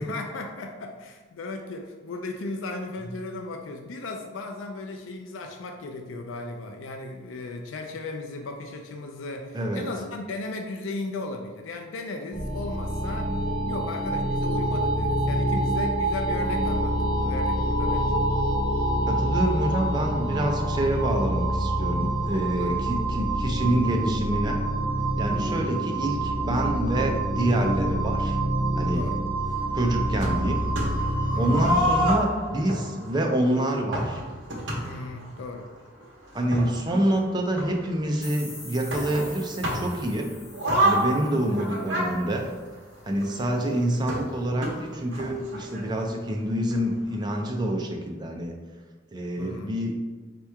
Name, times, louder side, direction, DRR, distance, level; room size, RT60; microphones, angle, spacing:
voice 1, 0.0-13.3 13.7-18.1 22.6-22.8 25.3-25.7 28.9-29.2 31.3-31.7 34.8-35.6 41.1-41.6 49.4-49.8, left 2 dB, 75° left, 3 dB, 0.4 m, -36 dB
voice 2, 9.5-9.8 19.1-24.6 25.2-28.4 28.8-29.1 29.7-30.6 31.4-34.2 36.3-40.3 40.8-42.5 43.1-48.5 49.1-49.9, right 1 dB, 20° right, 1 dB, 0.5 m, -27 dB
sound 1, 12.3-32.1, right 1 dB, 10° left, 0.9 m, -26 dB
sound 2, 30.2-31.1 31.5-35.3 36.0-36.1 36.4-38.3 38.9-40.0 40.5-43.3 44.1-46.0 46.4-46.5 46.7-46.8 47.5-47.6, right 1 dB, 65° right, 1.1 m, -28 dB
sound 3, 38.2-42.9, left 2 dB, 50° left, 1.5 m, -45 dB
4.4 x 2.9 x 3.5 m, 1.3 s
head